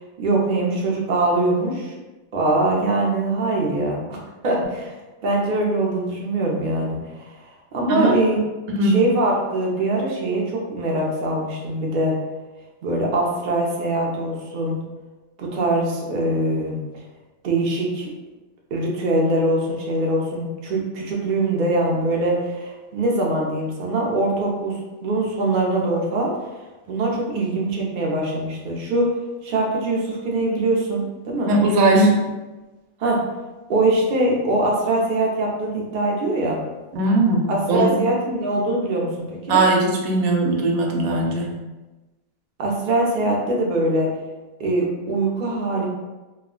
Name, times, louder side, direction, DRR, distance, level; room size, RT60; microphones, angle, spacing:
voice 1, 0.2-1.9 2.3-4.2 4.4-4.9 5.2-7.3 7.7-8.4 8.8-12.2 12.8-14.8 15.4-16.8 17.4-18.1 18.7-26.3 26.9-29.1 29.4-31.5 33.0-33.2 33.7-36.6 37.5-39.6 42.6-44.1 44.6-45.9, right 2 dB, 55° right, -2 dB, 0.6 m, -22 dB
voice 2, 8.7-9.0 31.5-32.2 36.9-38.0 39.5-41.5, right 2 dB, 85° right, 0 dB, 1.1 m, -19 dB
2.3 x 2.2 x 3.6 m, 1.1 s
omnidirectional pair, 1.5 m